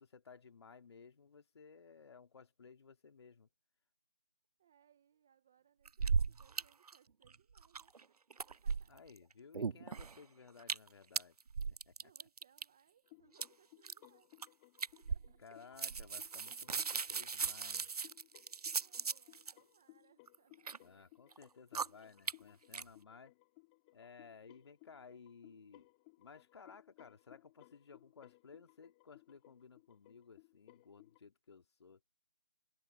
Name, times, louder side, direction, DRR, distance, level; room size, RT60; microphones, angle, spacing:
voice 1, 0.0-3.5 8.9-11.4 11.7-11.9 15.4-17.9 20.8-23.3 23.9-25.9 26.2-32.0, left 5 dB, 45° left, 2.3 m, -58 dB
voice 2, 4.6-9.1 12.0-14.3 14.9-15.6 18.7-21.1, right 9 dB, 5° right, 0.4 m, -71 dB
sound 1, 5.9-6.6 6.9-7.0 7.3-8.0 8.3-9.2 9.5-10.2 10.6-10.9 11.2-12.6 13.4-13.5 13.8-14.1 14.4-14.5 14.8-15.5 15.8-19.5 20.3-20.8 21.3-21.4 21.7-21.9 22.3-22.4 22.7-22.8, right 5 dB, 75° right, 0.5 m, -37 dB
sound 2, 13.0-31.2, left 25 dB, 15° left, 3.3 m, -64 dB
figure-of-eight pair, 155°, 20 cm